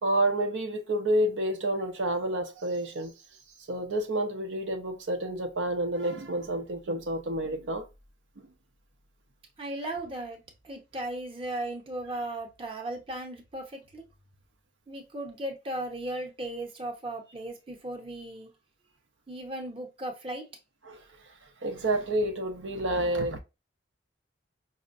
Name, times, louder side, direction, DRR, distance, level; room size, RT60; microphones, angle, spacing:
voice 1, 0.0-3.1 3.7-7.8 20.8-21.0 21.6-23.4, right 1 dB, 85° right, 0.6 m, -29 dB
voice 2, 9.6-10.4 10.6-14.0 14.9-18.5 19.3-20.4, right 1 dB, 30° right, 0.7 m, -36 dB
5.1 x 2.1 x 2.4 m
head